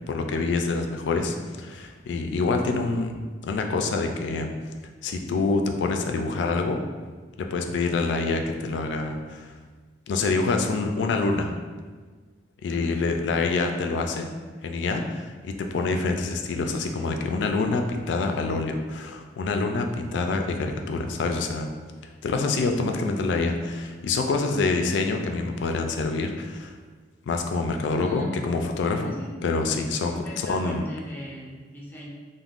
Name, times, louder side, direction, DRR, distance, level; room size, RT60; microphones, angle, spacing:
voice 1, 0.1-3.1 3.4-4.5 5.0-6.8 7.4-9.5 10.1-11.6 12.6-14.3 14.6-21.7 22.2-26.7 27.3-30.9, left 3 dB, 90° left, 4 dB, 0.3 m, -26 dB
voice 2, 12.7-13.0 27.9-28.3 29.0-29.3 30.1-32.1, left 1 dB, 10° left, -5 dB, 0.5 m, -41 dB
3.5 x 2.0 x 2.4 m, 1.5 s
head